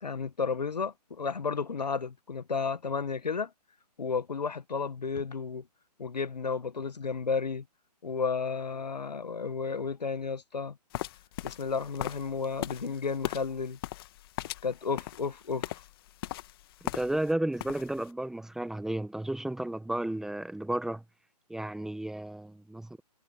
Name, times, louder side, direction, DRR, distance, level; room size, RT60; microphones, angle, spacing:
voice 1, 0.0-3.5 4.0-5.7 6.0-7.6 8.0-10.8 11.4-13.8 14.6-15.8, left 5 dB, 80° left, 1.4 m, -32 dB
sound 1, 10.9-17.3 17.6-18.1, left 15 dB, 35° left, 1.6 m, -38 dB
voice 2, 16.9-21.0 21.5-23.0, right 1 dB, ahead, 1.4 m, -33 dB
figure-of-eight pair, 140°, 21 cm